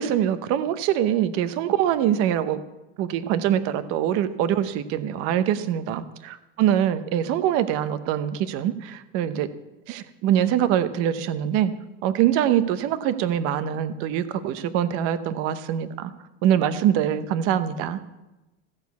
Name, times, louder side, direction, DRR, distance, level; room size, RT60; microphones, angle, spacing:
voice 1, 0.0-2.6 3.0-9.5 9.9-11.7 12.0-16.1 16.4-18.0, right 10 dB, 45° right, 12 dB, 0.8 m, -24 dB
15.5 x 6.7 x 8.2 m, 1.0 s
cardioid pair, 165°, 32 cm